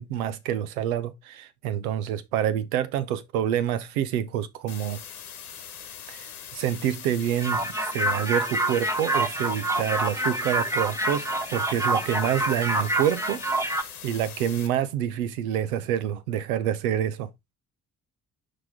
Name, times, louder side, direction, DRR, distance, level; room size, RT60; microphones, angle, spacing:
voice 1, 0.0-5.0 6.1-17.3, right 10 dB, 75° right, 0.8 m, -27 dB
sound 1, 4.7-14.7, left 8 dB, 85° left, 1.1 m, -42 dB
sound 2, 7.4-13.8, right 1 dB, 5° right, 1.0 m, -27 dB
6.0 x 5.1 x 3.6 m
figure-of-eight pair, 45°, 43 cm